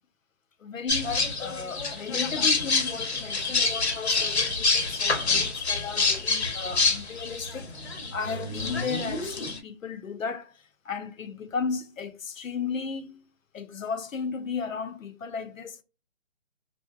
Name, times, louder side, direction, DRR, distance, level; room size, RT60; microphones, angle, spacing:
voice 1, 0.6-7.8 8.1-13.3 13.5-15.8, left 5 dB, 90° left, 0.8 m, -35 dB
sound 1, 0.9-9.6, left 4 dB, 55° left, 0.9 m, -27 dB
2.7 x 2.2 x 2.3 m
hypercardioid pair, 180°, 38 cm